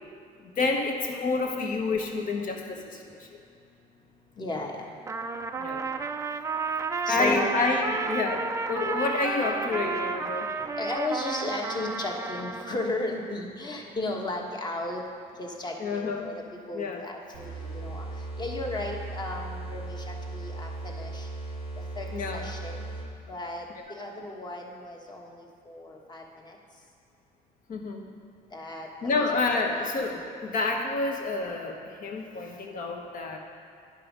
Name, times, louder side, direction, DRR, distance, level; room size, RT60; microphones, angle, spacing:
voice 1, 0.4-3.3 5.6-5.9 7.1-10.5 15.8-16.3 16.7-17.0 22.1-22.4 27.7-28.1 29.0-33.4, left 3 dB, 55° left, 2 dB, 1.3 m, -29 dB
voice 2, 4.4-4.9 7.1-7.5 10.8-15.0 15.4-18.1 18.4-21.3 21.8-22.1 22.3-22.8 23.3-26.6 28.5-29.3 29.6-29.9, left 2 dB, 25° left, 1 dB, 1.2 m, -35 dB
Trumpet, 5.1-12.9, right 4 dB, 20° right, 0.3 m, -32 dB
sound 1, 17.3-23.3, right 2 dB, 90° left, 1.9 m, -37 dB
10.0 x 5.5 x 5.2 m, 2.5 s
cardioid pair, 110°, 17 cm